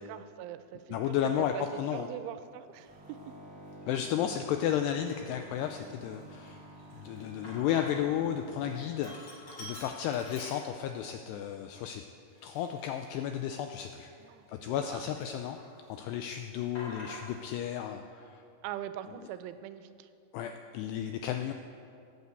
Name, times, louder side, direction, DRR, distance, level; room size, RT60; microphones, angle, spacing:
voice 1, 0.0-3.2 14.2-15.0 18.6-20.1, right 11 dB, 90° right, 11 dB, 3.1 m, -42 dB
voice 2, 0.9-2.1 3.9-12.0 12.4-14.1 14.5-15.6 15.9-18.4 20.3-21.5, left 10 dB, 85° left, 6 dB, 2.4 m, -33 dB
Sink (filling or washing), 2.9-3.1 3.8-4.3 4.7-4.8 5.1-8.2 8.5-11.1 11.5-11.6 12.3-14.8 15.1-15.9 16.2-17.6, left 1 dB, 30° left, 4.2 m, -48 dB
sound 1, 2.9-9.0, right 1 dB, 5° right, 1.4 m, -49 dB
17.0 x 8.3 x 8.1 m, 2.4 s
omnidirectional pair, 5.4 m